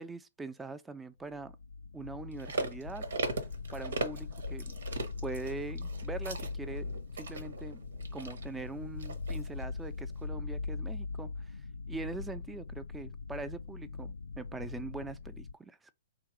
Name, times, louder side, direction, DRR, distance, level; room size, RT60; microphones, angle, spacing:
voice 1, 0.0-1.5 1.9-3.0 3.7-4.7 5.2-6.9 7.2-7.8 8.1-11.6 11.9-15.8, right 3 dB, 10° right, 0.5 m, -42 dB
sound 1, 1.2-15.5, left 4 dB, 80° left, 0.3 m, -41 dB
sound 2, 2.3-9.6 10.1-10.2, right 3 dB, 70° right, 0.9 m, -39 dB
3.8 x 2.9 x 4.8 m
hypercardioid pair, 120°, 0 cm